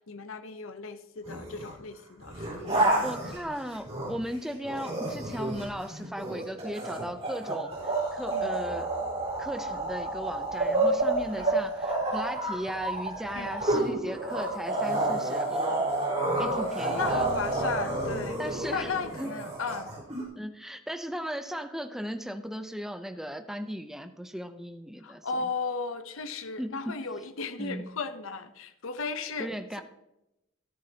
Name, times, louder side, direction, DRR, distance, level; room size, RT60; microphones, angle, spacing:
voice 1, 0.1-3.1 8.3-8.5 11.3-11.5 13.3-13.5 16.3-18.4 18.7-19.9 25.0-29.5, left 4 dB, 70° left, 10 dB, 0.7 m, -35 dB
sound 1, 1.2-1.7 2.2-4.3 4.6-20.2, right 2 dB, 30° right, 4.2 m, -30 dB
voice 2, 3.0-8.9 9.4-15.9 16.4-17.3 18.4-19.3 20.3-25.5 26.6-27.0 27.6-27.9 29.4-29.8, equal, ahead, 7 dB, 0.5 m, -37 dB
13.5 x 11.0 x 2.8 m, 0.89 s
head